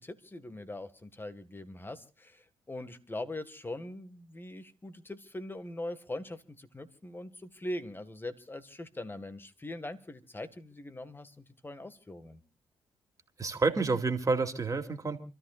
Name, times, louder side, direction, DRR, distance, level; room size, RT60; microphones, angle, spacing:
voice 1, 0.0-12.4, left 1 dB, 20° left, 12 dB, 1.8 m, -42 dB
voice 2, 13.4-15.2, right 3 dB, 35° right, 6 dB, 2.5 m, -29 dB
29.0 x 13.5 x 2.5 m, 0.32 s
supercardioid pair, 55°, 10 cm